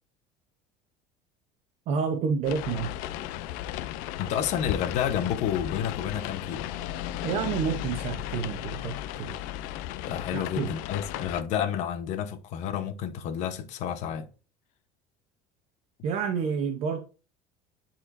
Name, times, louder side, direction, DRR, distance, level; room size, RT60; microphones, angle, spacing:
voice 1, 1.9-2.9 7.2-9.4 10.3-10.7 16.0-17.0, right 6 dB, 50° right, 0.9 m, -29 dB
sound 1, 2.5-11.4, left 13 dB, 70° left, 0.5 m, -35 dB
voice 2, 4.2-6.7 10.1-14.3, left 9 dB, 50° left, 0.9 m, -30 dB
10.0 x 4.4 x 2.6 m
cardioid pair, 165°, 15 cm